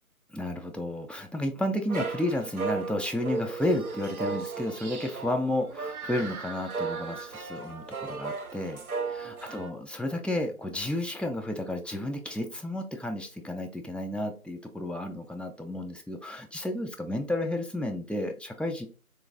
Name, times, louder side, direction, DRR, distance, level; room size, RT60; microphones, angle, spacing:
voice 1, 0.3-8.8 9.2-18.9, left 1 dB, 5° left, 2 dB, 0.3 m, -32 dB
sound 1, 1.9-9.7, right 4 dB, 80° right, 0.7 m, -35 dB
3.8 x 2.6 x 3.5 m, 0.36 s
figure-of-eight pair, 170°, 43 cm